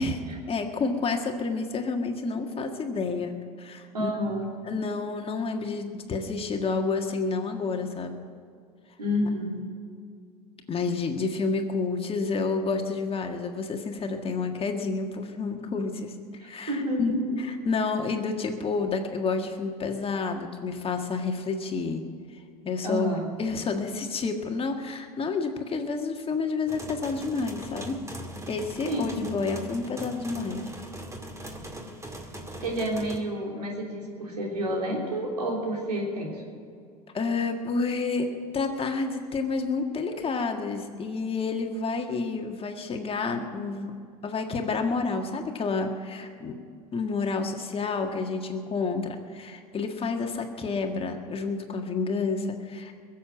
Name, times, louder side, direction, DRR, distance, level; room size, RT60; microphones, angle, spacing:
voice 1, 0.5-3.3 3.6-4.1 4.7-8.1 10.7-16.2 16.4-22.0 22.6-28.0 28.5-30.6 37.1-43.9 44.2-46.6 46.9-53.0, left 4 dB, 30° left, 4 dB, 1.7 m, -29 dB
voice 2, 3.9-4.5 9.0-9.7 16.4-17.4 22.8-23.3 28.9-29.3 32.6-36.5, equal, 90° right, -1 dB, 3.4 m, -29 dB
sound 1, 26.7-33.2, right 1 dB, 15° right, 2.2 m, -40 dB
22.0 x 7.6 x 7.5 m, 2.3 s
hypercardioid pair, 80°, 20 cm